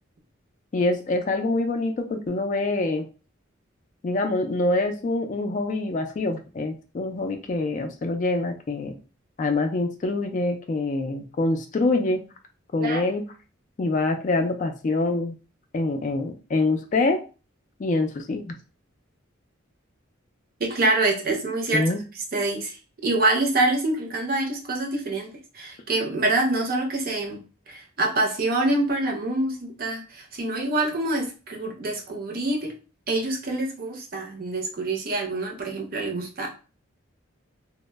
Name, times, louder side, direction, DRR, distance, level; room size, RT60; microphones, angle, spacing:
voice 1, 0.7-3.0 4.0-8.9 9.4-12.2 12.7-13.2 13.8-15.3 15.7-17.2 17.8-18.5 21.7-22.0, left 2 dB, 40° left, 5 dB, 0.3 m, -25 dB
voice 2, 20.6-21.9 22.3-22.8 23.0-27.4 27.7-32.7 33.1-36.5, right 2 dB, 45° right, 1 dB, 0.5 m, -26 dB
2.0 x 2.0 x 3.2 m, 0.34 s
head